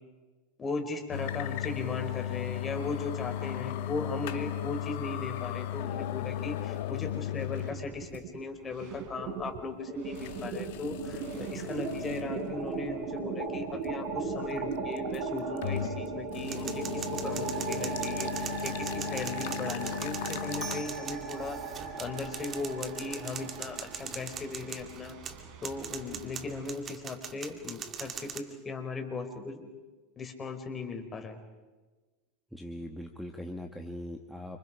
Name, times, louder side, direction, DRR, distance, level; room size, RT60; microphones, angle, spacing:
voice 1, 0.6-21.6 22.0-25.2 25.6-29.7 30.2-31.4, left 3 dB, 25° left, 5 dB, 4.9 m, -38 dB
sound 1, 1.1-7.8 8.1-8.2 9.0-9.1 10.1-12.3 12.8-12.9 15.0-16.0 16.3-20.8, left 11 dB, 65° left, 1.4 m, -36 dB
sound 2, 7.6-8.4 8.7-26.7, right 4 dB, 55° right, 3.9 m, -38 dB
sound 3, 16.5-28.4, right 7 dB, 35° right, 2.3 m, -41 dB
voice 2, 32.5-34.6, left 1 dB, ahead, 4 dB, 2.0 m, -40 dB
29.5 x 26.5 x 5.1 m, 1.3 s
hypercardioid pair, 90°, 0 cm